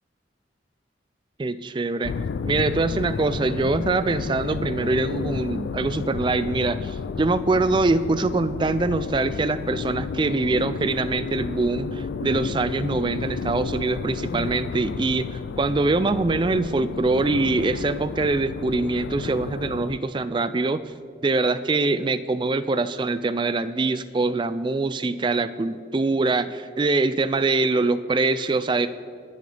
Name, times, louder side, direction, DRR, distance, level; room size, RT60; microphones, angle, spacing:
voice 1, 1.4-2.1 2.4-20.8 21.2-28.9, right 3 dB, 25° right, 13 dB, 0.3 m, -24 dB
sound 1, 2.0-20.0, left 5 dB, 65° left, 0.3 m, -32 dB
22.0 x 10.5 x 3.4 m, 2.2 s
head